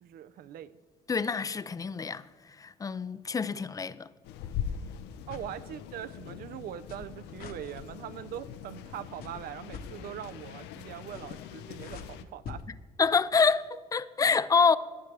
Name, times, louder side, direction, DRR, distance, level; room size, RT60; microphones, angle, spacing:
voice 1, 0.0-0.8 5.3-12.6, right 11 dB, 65° right, 0.5 m, -42 dB
voice 2, 1.1-2.2 2.6-4.1 13.0-14.8, left 5 dB, 20° left, 0.3 m, -26 dB
sound 1, 4.2-12.2, left 8 dB, 90° left, 0.6 m, -42 dB
sound 2, 5.1-5.5 6.5-7.9 8.8-9.0 9.2-9.9 10.9-11.5 11.7-12.6 13.3-13.5, left 6 dB, 60° left, 1.1 m, -45 dB
15.5 x 9.1 x 3.3 m
cardioid pair, 110°, 17 cm